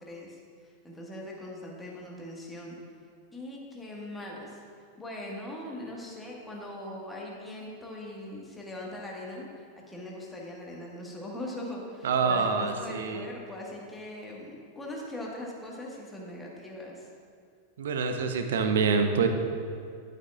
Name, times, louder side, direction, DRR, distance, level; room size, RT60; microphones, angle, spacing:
voice 1, 0.0-2.7 3.3-4.6 5.0-17.1, left 1 dB, 10° left, -3 dB, 1.6 m, -41 dB
voice 2, 12.0-13.3 17.8-19.3, right 5 dB, 60° right, 6 dB, 0.7 m, -26 dB
12.0 x 7.9 x 2.5 m, 2.3 s
figure-of-eight pair, 90°, 0 cm